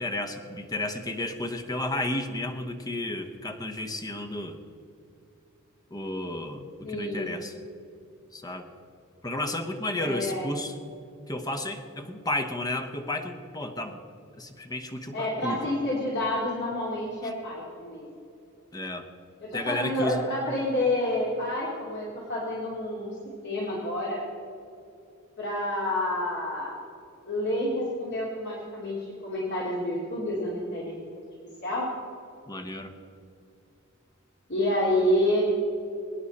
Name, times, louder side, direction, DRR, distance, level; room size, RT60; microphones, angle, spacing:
voice 1, 0.0-4.6 5.9-7.5 8.3-8.7 9.2-10.7 11.3-14.0 14.3-15.6 17.2-17.4 18.7-19.1 19.5-20.2 32.5-32.9, left 1 dB, 20° left, 6 dB, 1.0 m, -32 dB
voice 2, 6.8-7.3 10.0-10.5 15.1-18.1 19.4-23.1 23.4-24.2 25.4-26.7 27.2-31.0 31.6-31.9 34.5-35.4, left 1 dB, 55° left, -5 dB, 2.6 m, -28 dB
23.0 x 10.0 x 4.2 m, 2.6 s
head